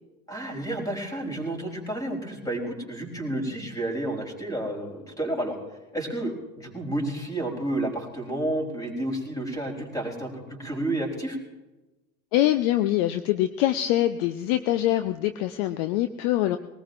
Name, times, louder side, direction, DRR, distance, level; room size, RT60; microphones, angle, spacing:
voice 1, 0.3-5.5 5.9-11.4, right 1 dB, 10° left, 1 dB, 4.0 m, -31 dB
voice 2, 12.3-16.6, left 14 dB, 45° left, 10 dB, 0.7 m, -24 dB
21.5 x 19.0 x 2.6 m, 1.1 s
figure-of-eight pair, 90°, 41 cm